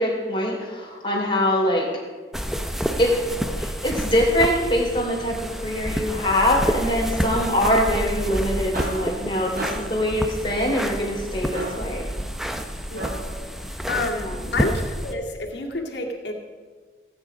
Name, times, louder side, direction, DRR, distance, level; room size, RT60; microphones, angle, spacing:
voice 1, 0.0-1.9 3.0-3.2 3.5-12.1 14.1-14.5, equal, 30° left, -2 dB, 3.1 m, -23 dB
sound 1, 2.3-15.1, equal, ahead, 0.6 m, -29 dB
sound 2, 8.6-13.5, right 1 dB, 55° right, 3.4 m, -36 dB
voice 2, 12.9-13.2 13.9-16.3, left 2 dB, 80° left, -1 dB, 2.2 m, -29 dB
17.0 x 9.0 x 5.0 m, 1.5 s
head